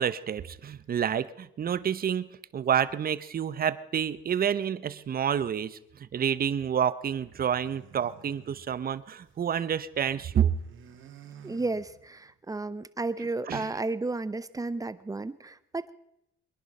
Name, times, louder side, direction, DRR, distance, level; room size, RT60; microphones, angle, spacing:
voice 1, 0.0-10.5 13.5-13.7, right 8 dB, 50° right, 16 dB, 0.9 m, -29 dB
sound 1, 7.1-9.5 9.8-12.3, right 8 dB, 80° right, 2.3 m, -52 dB
voice 2, 11.4-15.9, right 3 dB, 15° right, 16 dB, 0.9 m, -33 dB
23.5 x 11.0 x 5.5 m, 0.81 s
cardioid pair, 90°, 20 cm